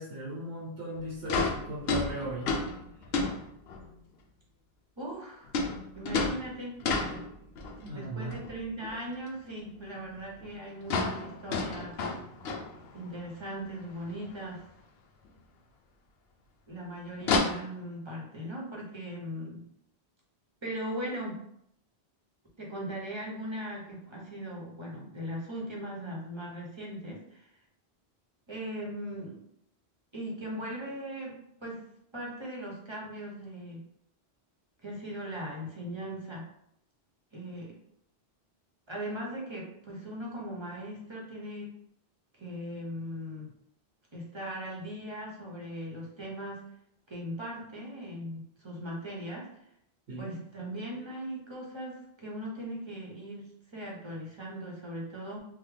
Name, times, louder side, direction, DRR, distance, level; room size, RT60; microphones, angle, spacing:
voice 1, 0.0-2.5 3.1-3.2 7.8-8.4 50.1-50.4, right 1 dB, 85° right, -5 dB, 1.0 m, -38 dB
sound 1, 1.0-1.1 1.3-4.0 5.5-7.9 8.3-9.0 9.3-9.4 9.8-9.9 10.1-10.2 10.4-10.5 10.8-13.2 13.6-13.7 14.0-14.1 15.2-15.3 17.2-17.4, left 3 dB, 75° left, 0.8 m, -31 dB
voice 2, 5.0-5.5 5.9-6.7 7.9-12.0 12.9-14.6 16.7-19.7 20.6-21.4 22.6-27.5 28.5-29.4 30.1-31.9 32.1-33.8 34.8-36.5 37.3-37.8 38.9-41.7 42.3-43.5 44.1-46.6 47.1-49.5 50.2-55.4, equal, 30° right, -3 dB, 0.7 m, -39 dB
3.5 x 2.1 x 3.2 m, 0.73 s
omnidirectional pair, 1.1 m